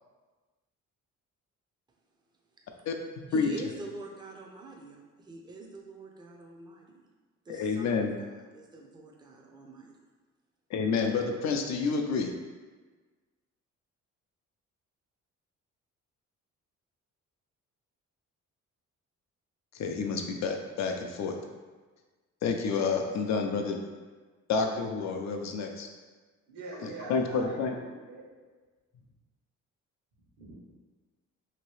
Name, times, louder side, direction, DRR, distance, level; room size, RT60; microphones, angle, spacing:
voice 1, 3.3-7.0 7.5-10.0, right 2 dB, 15° right, 0 dB, 0.5 m, -45 dB
voice 2, 7.5-8.2 10.7-12.3 19.7-21.3 22.4-23.8 24.5-25.9 27.1-27.7, left 5 dB, 65° left, 3 dB, 0.5 m, -29 dB
voice 3, 26.5-28.3 30.4-30.6, right 2 dB, 70° right, -4 dB, 1.1 m, -43 dB
2.9 x 2.6 x 3.1 m, 1.3 s
cardioid pair, 90°, 30 cm